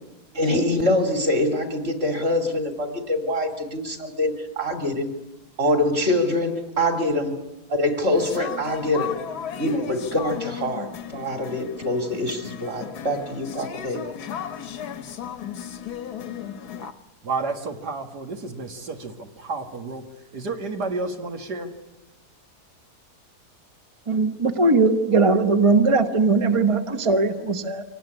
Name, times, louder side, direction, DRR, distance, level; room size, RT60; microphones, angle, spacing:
voice 1, 0.3-5.1 5.6-7.3 7.7-9.1 9.6-10.9 11.1-14.0, left 1 dB, 40° right, 3.3 m, -24 dB
sound 1, 8.1-16.9, left 9 dB, 75° left, 1.6 m, -35 dB
voice 2, 17.2-20.0 20.3-21.7, right 3 dB, 80° right, 2.5 m, -31 dB
voice 3, 24.1-27.8, right 3 dB, 25° right, 0.9 m, -19 dB
25.0 x 18.5 x 9.9 m
omnidirectional pair, 1.7 m